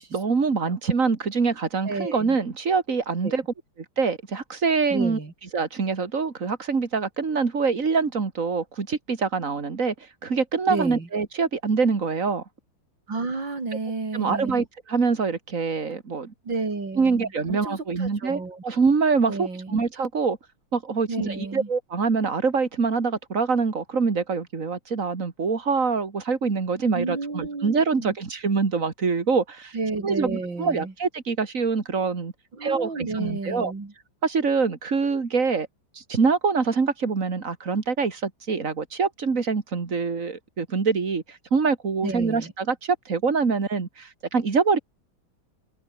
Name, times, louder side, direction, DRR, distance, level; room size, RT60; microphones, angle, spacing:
voice 1, 0.1-3.4 4.0-5.2 5.5-9.9 10.2-12.4 14.1-16.3 17.0-20.4 20.7-29.7 30.0-32.3 32.6-33.7 34.2-35.7 36.0-44.8, right 5 dB, 40° right, 2.6 m, -25 dB
voice 2, 1.8-2.4 3.2-3.4 4.9-5.3 10.7-11.1 13.1-14.6 16.4-18.6 19.3-19.8 21.1-21.7 26.9-28.2 29.7-30.9 32.5-33.9 42.0-42.5, right 3 dB, 60° right, 5.4 m, -31 dB
open air
omnidirectional pair, 2.3 m